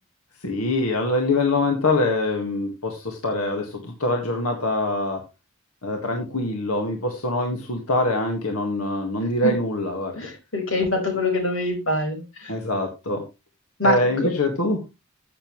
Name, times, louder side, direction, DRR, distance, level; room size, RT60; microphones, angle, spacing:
voice 1, 0.4-5.2 5.8-10.3 12.5-13.2 13.8-14.9, left 2 dB, 90° left, 3 dB, 1.8 m, -24 dB
voice 2, 10.1-12.5 13.8-14.1, left 2 dB, 60° left, 3 dB, 5.0 m, -24 dB
14.5 x 7.0 x 3.2 m, 0.25 s
head